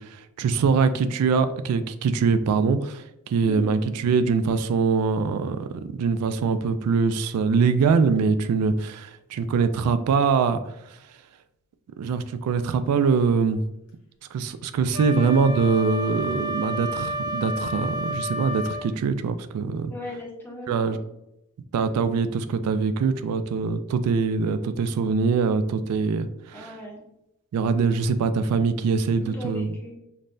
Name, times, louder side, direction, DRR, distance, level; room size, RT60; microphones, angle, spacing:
voice 1, 0.0-11.0 12.0-13.6 14.3-19.9 20.7-21.0 21.7-26.7 27.5-29.7, right 5 dB, 90° right, 12 dB, 0.3 m, -23 dB
voice 2, 3.4-3.8 15.0-15.3 19.9-21.0 26.5-27.0 29.2-29.9, left 1 dB, 10° left, -2 dB, 0.7 m, -37 dB
Wind instrument woodwind instrument, 14.9-18.9, equal, 85° left, 0.9 m, -31 dB
5.3 x 2.1 x 2.5 m, 0.85 s
head